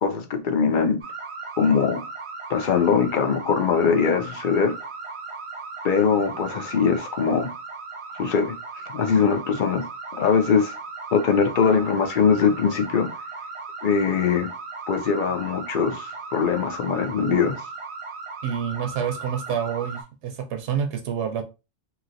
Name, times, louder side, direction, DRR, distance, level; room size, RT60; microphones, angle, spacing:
voice 1, 0.0-1.0 1.6-2.0 2.5-4.7 5.8-7.5 8.1-8.5 8.9-9.8 10.2-10.7 11.1-13.1 13.8-14.5 14.9-17.6, left 6 dB, 55° left, 0.6 m, -21 dB
sound 1, 1.0-20.0, right 4 dB, 50° right, 0.4 m, -37 dB
voice 2, 18.4-21.4, right 8 dB, 80° right, 0.9 m, -28 dB
3.0 x 2.6 x 2.6 m
omnidirectional pair, 1.1 m